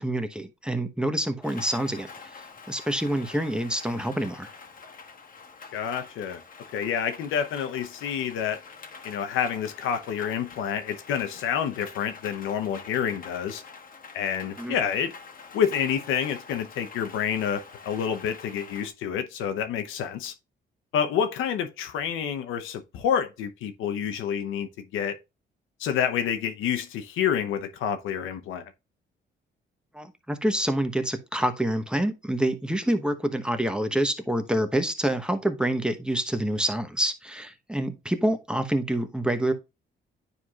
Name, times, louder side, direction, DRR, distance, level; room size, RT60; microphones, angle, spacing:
voice 1, 0.0-4.5 14.6-14.8 29.9-39.5, right 1 dB, 5° right, 1.0 m, -27 dB
Rain, 1.4-18.9, left 5 dB, 45° left, 1.4 m, -46 dB
voice 2, 5.7-6.4 6.7-8.6 9.0-13.6 14.1-15.1 15.5-20.3 20.9-25.2 25.8-28.7, left 8 dB, 90° left, 0.8 m, -28 dB
9.8 x 4.6 x 2.4 m
cardioid pair, 90°, 20 cm